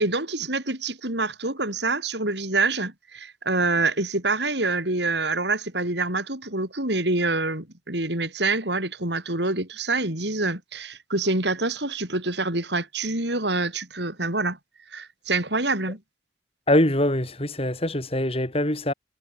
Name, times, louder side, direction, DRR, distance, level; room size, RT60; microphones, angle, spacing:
voice 1, 0.0-14.6 14.9-16.0, right 3 dB, 65° right, 6.6 m, -26 dB
voice 2, 16.7-18.9, left 1 dB, 30° left, 5.3 m, -23 dB
head